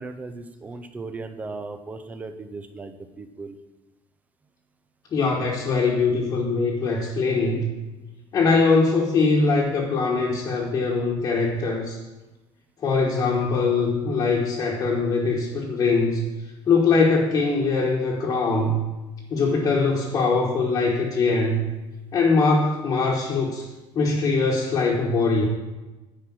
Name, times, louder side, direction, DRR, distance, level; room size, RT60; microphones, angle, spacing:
voice 1, 0.0-3.6, right 3 dB, 15° right, 8 dB, 0.5 m, -37 dB
voice 2, 5.1-7.7 8.3-12.0 12.8-16.3 16.7-18.8 19.3-21.7 22.1-23.7 23.9-25.4, left 4 dB, 35° left, -4 dB, 1.3 m, -22 dB
9.8 x 4.9 x 6.0 m, 1.1 s
cardioid pair, 165°, 10 cm